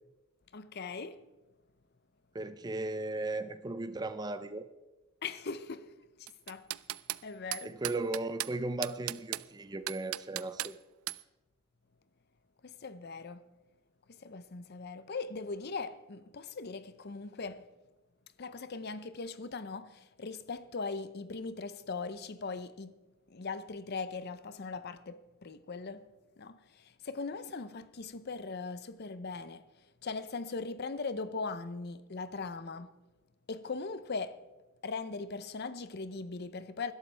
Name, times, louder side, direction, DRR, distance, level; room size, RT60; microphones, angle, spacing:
voice 1, 0.5-1.2 5.2-5.9 6.2-6.7 7.2-7.7 12.6-13.4 14.1-17.7 18.4-22.9 23.3-26.1 26.4-29.6 30.0-32.9 33.5-34.4 34.8-36.9, left 4 dB, 50° left, 0.6 m, -40 dB
voice 2, 2.3-4.7 7.6-10.8, right 2 dB, 20° right, 0.4 m, -36 dB
sound 1, 6.3-7.2 7.5-8.5 8.8-9.5 9.9-10.7 11.1-11.2, right 16 dB, 80° right, 0.4 m, -36 dB
20.5 x 12.0 x 3.4 m
head